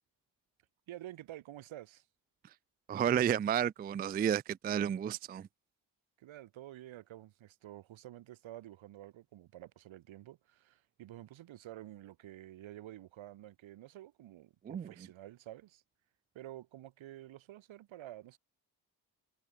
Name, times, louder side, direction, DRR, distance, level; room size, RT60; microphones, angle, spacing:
voice 1, 0.9-2.0 6.2-15.8 16.3-18.4, right 14 dB, 80° right, 7.9 m, -50 dB
voice 2, 2.9-5.5 14.6-14.9, right 9 dB, 25° right, 0.3 m, -31 dB
supercardioid pair, 45°, 46 cm